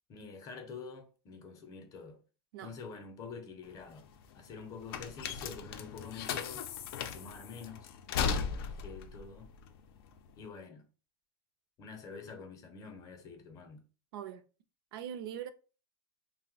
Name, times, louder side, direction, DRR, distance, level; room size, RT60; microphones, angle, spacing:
voice 1, 0.1-2.2 2.6-4.1 4.3-6.7 7.1-7.9 8.5-9.5 10.4-10.9 11.8-13.8, left 5 dB, 30° left, 0.5 m, -47 dB
sound 1, 3.6-10.4, left 6 dB, 75° left, 0.4 m, -37 dB
voice 2, 14.9-15.5, right 9 dB, 75° right, 0.4 m, -41 dB
2.6 x 2.0 x 3.7 m
supercardioid pair, 155°, 12 cm